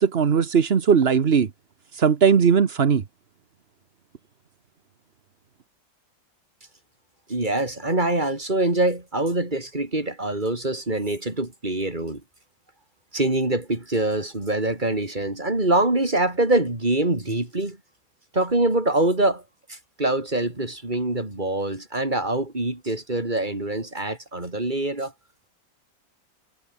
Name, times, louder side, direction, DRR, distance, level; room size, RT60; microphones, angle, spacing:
voice 1, 0.0-1.5 1.9-3.0, right 6 dB, 40° right, 1.1 m, -18 dB
voice 2, 7.3-12.2 13.1-17.8 18.3-19.4 19.7-25.1, right 2 dB, 25° right, 4.3 m, -24 dB
omnidirectional pair, 2.0 m